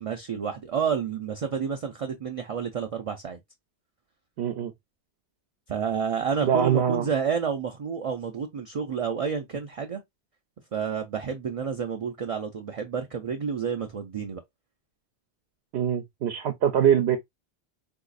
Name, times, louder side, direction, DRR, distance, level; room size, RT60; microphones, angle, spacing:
voice 1, 0.0-3.4 5.7-10.0 10.7-14.4, right 6 dB, 50° right, 0.4 m, -30 dB
voice 2, 4.4-4.7 6.4-7.1 15.7-17.2, right 9 dB, 75° right, 0.8 m, -23 dB
3.9 x 2.7 x 2.4 m
omnidirectional pair, 1.1 m